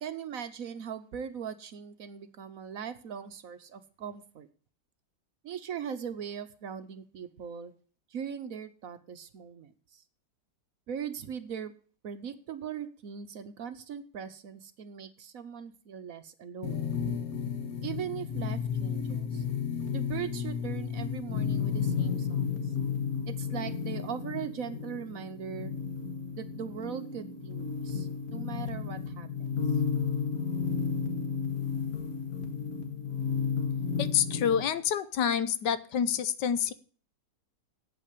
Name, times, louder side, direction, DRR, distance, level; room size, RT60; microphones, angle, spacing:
voice 1, 0.0-4.5 5.4-7.7 8.1-10.0 10.9-11.7 12.0-16.9 17.8-19.4 19.9-22.7 23.3-25.7 26.3-29.5, right 8 dB, 60° right, 11 dB, 1.1 m, -40 dB
sound 1, 16.6-34.6, left 6 dB, 60° left, 2.0 m, -32 dB
voice 2, 34.0-36.7, left 8 dB, 80° left, 14 dB, 1.4 m, -28 dB
8.7 x 8.5 x 8.2 m, 0.43 s
omnidirectional pair, 1.9 m